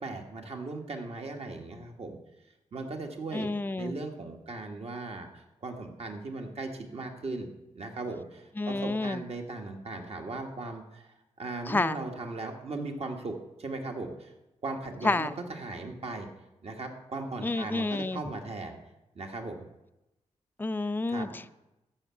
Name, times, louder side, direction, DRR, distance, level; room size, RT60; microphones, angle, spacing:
voice 1, 0.0-2.2 2.7-3.5 3.8-11.1 11.4-14.3 14.6-16.3 16.6-18.8 19.1-19.7 21.1-21.3, right 3 dB, 55° right, 3 dB, 1.6 m, -38 dB
voice 2, 3.3-4.0 8.6-9.2 11.7-12.0 15.0-15.4 17.4-18.2 20.6-21.5, left 2 dB, 15° left, 11 dB, 0.4 m, -29 dB
14.0 x 5.7 x 7.1 m, 0.95 s
cardioid pair, 60°, 12 cm